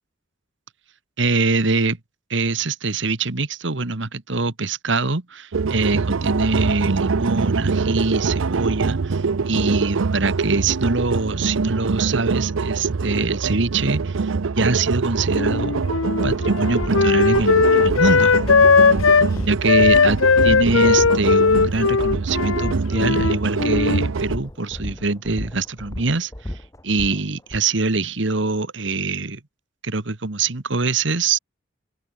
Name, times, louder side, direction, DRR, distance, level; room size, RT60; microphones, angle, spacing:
voice 1, 1.2-2.0 2.3-15.7 16.2-18.4 19.5-26.5 26.8-29.4 29.8-31.4, right 3 dB, 65° right, 1.5 m, -23 dB
sound 1, 5.5-24.4, right 4 dB, 85° right, 0.6 m, -24 dB
Wind instrument woodwind instrument, 15.3-19.3 19.7-24.1, left 5 dB, 90° left, 0.9 m, -18 dB
sound 2, 15.7-15.8 16.2-27.6, equal, 15° left, 1.3 m, -33 dB
open air
head